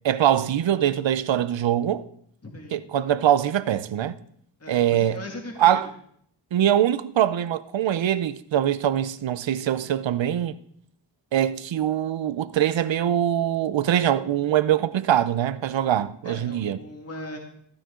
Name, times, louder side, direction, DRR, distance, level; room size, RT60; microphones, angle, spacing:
voice 1, 0.0-2.0 2.7-4.2 4.7-5.2 5.6-5.9 6.5-10.6 11.3-16.8, right 11 dB, 85° right, 0.7 m, -23 dB
voice 2, 2.4-2.8 4.6-5.8 16.2-17.4, left 1 dB, 35° left, 2.2 m, -39 dB
14.5 x 12.5 x 3.8 m
wide cardioid pair, 125°, 44 cm